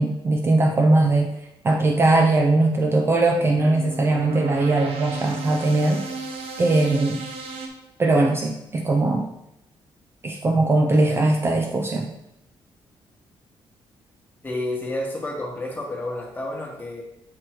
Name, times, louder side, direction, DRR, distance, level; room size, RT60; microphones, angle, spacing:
voice 1, 0.0-1.3 1.6-6.0 6.6-7.2 8.0-9.3 10.2-12.1, right 2 dB, 25° right, 3 dB, 0.4 m, -20 dB
sound 1, 3.1-7.7, right 4 dB, 80° right, 0.8 m, -35 dB
voice 2, 14.4-17.0, left 1 dB, 20° left, -1 dB, 1.3 m, -30 dB
7.7 x 3.0 x 4.5 m, 0.86 s
wide cardioid pair, 155°, 10 cm